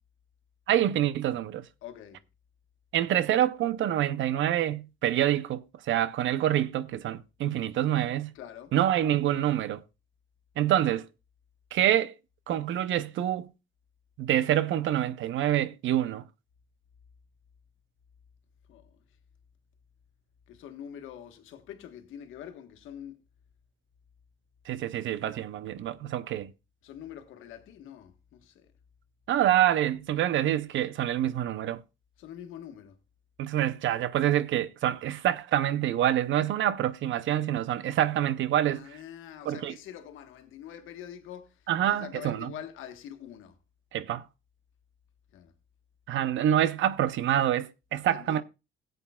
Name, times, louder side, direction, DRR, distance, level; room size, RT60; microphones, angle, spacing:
voice 1, 0.7-1.7 2.9-8.3 8.7-9.8 10.6-11.1 11.7-12.1 12.5-13.5 14.2-16.2 24.7-26.5 29.3-31.8 33.4-38.8 39.5-39.7 41.7-42.5 43.9-44.2 46.1-48.4, right 11 dB, 75° right, 0.7 m, -26 dB
voice 2, 1.8-2.2 8.3-8.7 18.7-18.9 20.5-23.2 26.8-28.7 32.2-32.9 38.6-43.6 45.3-45.5 48.1-48.4, left 10 dB, 90° left, 1.4 m, -45 dB
16.5 x 8.0 x 2.3 m
cardioid pair, 90°, 20 cm